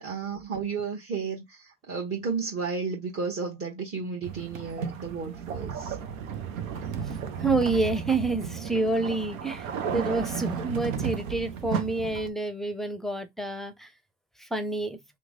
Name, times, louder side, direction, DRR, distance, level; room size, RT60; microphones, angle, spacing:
voice 1, 0.0-6.0, right 5 dB, 35° right, 1.2 m, -33 dB
sound 1, 4.2-12.3, right 7 dB, 85° right, 0.7 m, -34 dB
voice 2, 7.4-13.9 14.4-15.0, right 3 dB, ahead, 0.6 m, -28 dB
3.1 x 2.0 x 3.7 m
hypercardioid pair, 70°, 38 cm